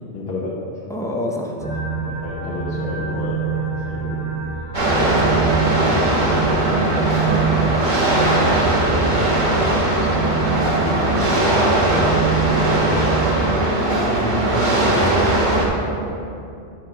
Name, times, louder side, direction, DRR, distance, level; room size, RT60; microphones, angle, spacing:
voice 1, 0.1-0.6 1.9-4.3 6.2-7.6 10.5-12.2 15.4-15.9, left 3 dB, 55° left, -5 dB, 1.1 m, -31 dB
voice 2, 0.9-1.8 4.9-5.4 14.0-15.1, left 1 dB, 5° left, -1 dB, 0.4 m, -28 dB
sound 1, 1.6-13.7, right 6 dB, 85° right, 2.2 m, -26 dB
sound 2, 4.7-15.7, right 1 dB, 40° right, 1.3 m, -19 dB
8.0 x 4.7 x 5.1 m, 2.7 s
omnidirectional pair, 1.2 m